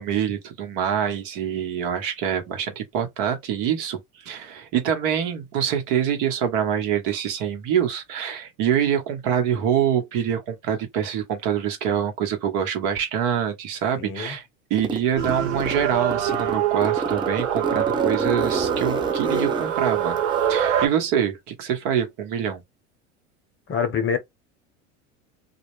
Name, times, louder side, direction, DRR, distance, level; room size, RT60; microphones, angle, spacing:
voice 1, 0.0-14.4 14.7-22.6, right 9 dB, 55° right, 1.1 m, -25 dB
voice 2, 14.0-14.4 23.7-24.2, left 6 dB, 30° left, 0.8 m, -25 dB
Zipper (clothing), 14.8-15.8 16.1-20.8, right 2 dB, 10° right, 0.5 m, -29 dB
sound 1, 15.2-20.9, right 9 dB, 90° right, 0.8 m, -24 dB
2.4 x 2.0 x 3.1 m
hypercardioid pair, 90°, 38 cm